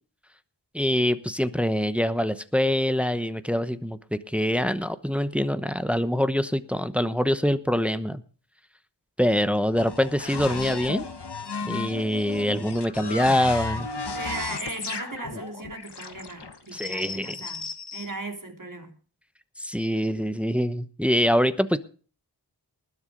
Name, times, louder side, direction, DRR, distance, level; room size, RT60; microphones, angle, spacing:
voice 1, 0.7-8.2 9.2-11.0 11.6-13.9 16.7-17.4 19.6-21.8, equal, 5° right, 0.9 m, -24 dB
sound 1, 9.8-18.1, left 4 dB, 75° left, 1.5 m, -34 dB
voice 2, 14.1-17.6 17.9-18.9, right 3 dB, 50° right, 3.3 m, -37 dB
20.0 x 7.1 x 5.1 m
wide cardioid pair, 65°, 41 cm